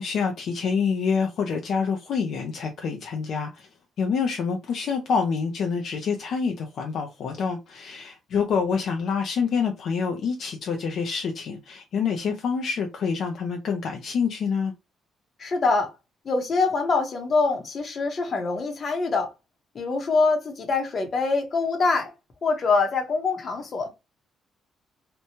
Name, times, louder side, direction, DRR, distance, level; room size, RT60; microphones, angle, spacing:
voice 1, 0.0-3.7 4.0-14.7, left 5 dB, 60° left, 0.5 m, -27 dB
voice 2, 15.4-15.9 16.2-19.3 19.7-22.1 22.4-23.9, left 4 dB, 40° left, 0.8 m, -24 dB
2.9 x 2.2 x 2.7 m
cardioid pair, 130°, 0 cm